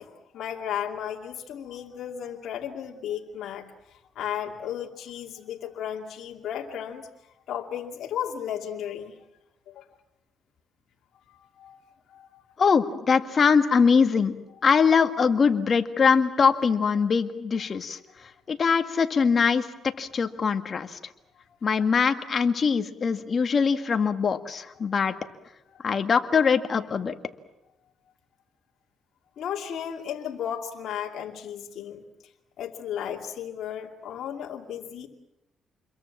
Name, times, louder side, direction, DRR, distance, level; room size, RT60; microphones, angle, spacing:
voice 1, 0.0-3.7 4.1-7.1 7.5-9.2 9.7-9.8 11.3-11.8 12.1-12.4 25.9-26.0 29.4-32.0 32.6-35.1, left 9 dB, 70° left, 0 dB, 2.5 m, -34 dB
voice 2, 12.6-14.4 14.6-18.0 18.5-19.7 20.0-21.0 21.6-25.1 25.8-27.1, left 5 dB, 45° left, 7 dB, 1.9 m, -22 dB
28.0 x 22.5 x 7.4 m, 0.89 s
cardioid pair, 90°, 0 cm